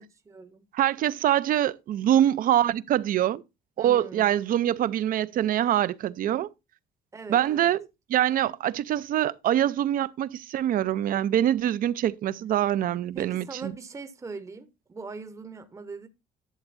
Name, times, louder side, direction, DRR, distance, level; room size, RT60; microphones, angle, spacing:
voice 1, 0.0-0.6 3.8-4.3 7.1-7.7 13.1-16.1, right 4 dB, 20° right, 0.8 m, -41 dB
voice 2, 0.7-3.4 3.8-6.5 7.3-7.8 8.1-13.7, right 11 dB, 55° right, 0.5 m, -24 dB
11.0 x 7.2 x 2.6 m
cardioid pair, 110°, 17 cm